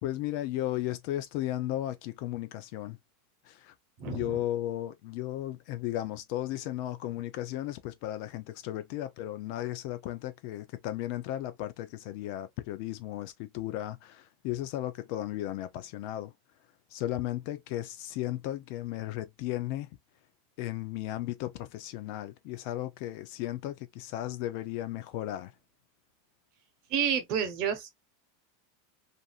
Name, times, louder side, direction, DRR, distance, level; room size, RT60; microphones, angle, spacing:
voice 1, 0.0-3.0 3.4-3.7 4.1-16.3 16.9-19.9 20.6-25.5, left 14 dB, 60° left, 0.5 m, -35 dB
voice 2, 4.0-4.4 26.9-27.9, right 8 dB, 50° right, 0.9 m, -30 dB
2.6 x 2.6 x 2.4 m
supercardioid pair, 130°, 0 cm